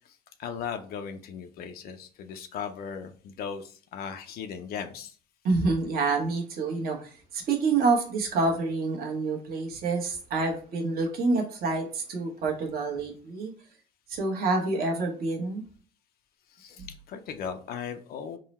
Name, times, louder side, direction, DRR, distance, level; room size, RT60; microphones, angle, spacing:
voice 1, 0.4-5.1 16.5-18.4, left 7 dB, 65° left, 7 dB, 0.5 m, -37 dB
voice 2, 5.4-13.5 14.1-15.6, right 3 dB, 65° right, 1 dB, 1.1 m, -27 dB
3.7 x 2.1 x 4.1 m, 0.41 s
cardioid pair, 110°, 17 cm